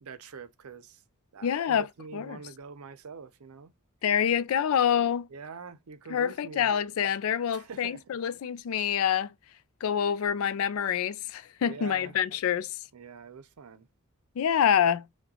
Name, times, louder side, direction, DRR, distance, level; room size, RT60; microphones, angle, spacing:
voice 1, 0.0-1.0 1.3-3.7 5.3-6.7 7.5-8.0 11.6-12.2 12.9-13.9, right 5 dB, 90° right, 0.6 m, -44 dB
voice 2, 1.4-1.9 2.1-2.4 4.0-5.3 6.1-9.3 9.8-12.8 14.4-15.1, left 8 dB, 70° left, 0.4 m, -26 dB
6.0 x 2.2 x 2.9 m
head